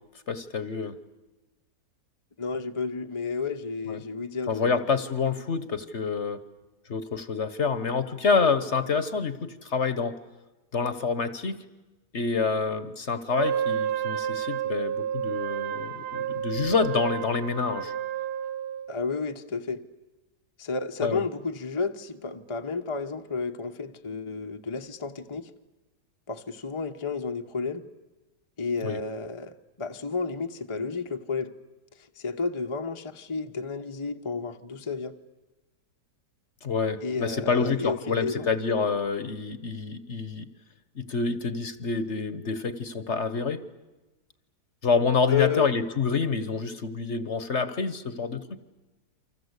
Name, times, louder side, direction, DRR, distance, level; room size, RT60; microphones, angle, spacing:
voice 1, 0.3-1.0 3.9-4.0 4.5-6.4 6.9-10.1 10.7-11.6 12.1-17.9 21.0-21.2 28.8-29.0 36.6-40.5 41.0-43.6 44.8-48.6, left 5 dB, 45° left, 13 dB, 1.3 m, -27 dB
voice 2, 2.4-4.8 18.9-19.8 20.6-25.5 26.3-27.8 28.6-31.5 32.2-35.1 37.0-38.5 45.3-45.7, left 4 dB, 20° left, 5 dB, 0.9 m, -31 dB
Wind instrument woodwind instrument, 13.3-18.9, right 9 dB, 70° right, 2.1 m, -30 dB
29.0 x 25.0 x 8.2 m, 1.1 s
omnidirectional pair, 1.8 m